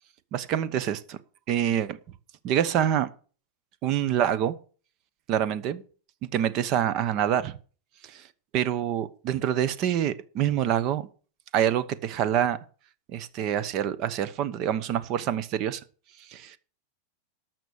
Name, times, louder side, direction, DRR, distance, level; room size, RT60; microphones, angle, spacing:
voice 1, 0.3-1.2 1.5-2.0 2.4-3.1 3.8-4.5 5.3-5.8 6.2-7.6 8.0-8.3 8.5-11.1 11.5-12.6 13.1-15.8 16.3-16.6, right 10 dB, 40° right, 1.0 m, -26 dB
13.0 x 6.1 x 7.0 m
supercardioid pair, 140°, 0 cm